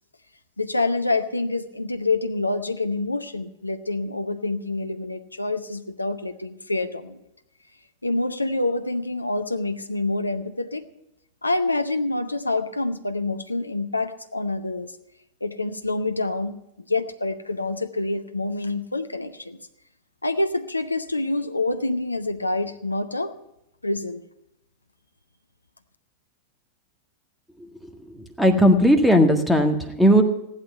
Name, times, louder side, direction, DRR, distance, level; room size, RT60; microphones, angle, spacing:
voice 1, 0.6-7.2 8.0-10.9 11.4-14.9 15.4-16.5 16.9-19.6 20.2-23.4 23.8-24.2, left 2 dB, 85° left, 8 dB, 0.7 m, -27 dB
voice 2, 28.1-30.2, equal, ahead, 5 dB, 1.7 m, -17 dB
15.0 x 11.5 x 5.6 m, 0.86 s
figure-of-eight pair, 90°, 0 cm